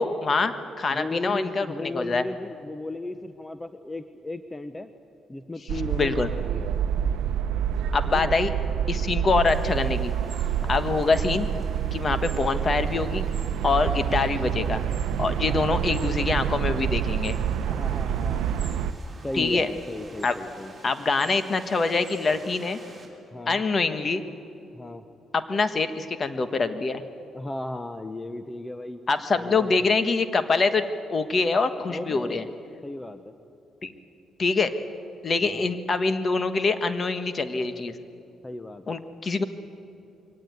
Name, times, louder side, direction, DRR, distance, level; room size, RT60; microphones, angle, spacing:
voice 1, 0.0-2.2 5.9-6.3 7.9-8.5 8.9-10.1 10.7-11.5 11.9-13.2 13.6-14.8 15.2-17.4 19.3-19.7 20.2-20.4 20.8-22.8 23.5-24.2 25.3-27.0 29.1-32.4 33.8-33.9 34.4-34.7 35.2-37.9 38.9-39.4, left 4 dB, 40° left, 10 dB, 1.4 m, -25 dB
voice 2, 0.9-4.9 5.3-6.8 8.1-8.3 10.5-10.8 13.9-14.6 15.4-16.0 17.6-18.7 19.2-20.7 23.3-23.6 24.7-25.0 27.3-29.0 29.3-29.9 31.9-32.4 32.8-33.3 35.4-35.7 38.4-39.0, left 2 dB, 15° left, 10 dB, 0.8 m, -36 dB
sound 1, 5.7-18.9, right 9 dB, 90° right, 0.7 m, -27 dB
sound 2, 9.5-23.1, right 2 dB, 15° right, 4.9 m, -47 dB
23.0 x 18.0 x 9.3 m, 2.7 s
cardioid pair, 90°, 0 cm